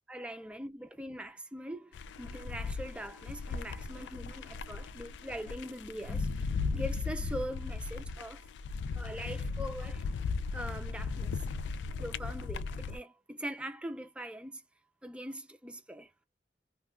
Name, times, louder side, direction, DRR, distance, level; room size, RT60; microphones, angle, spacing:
voice 1, 0.1-8.5 8.9-10.1 10.5-11.4 12.0-14.6 15.0-16.1, equal, 5° right, 0.4 m, -42 dB
sound 1, 1.9-13.0, left 4 dB, 85° left, 0.3 m, -37 dB
2.3 x 2.2 x 3.1 m
head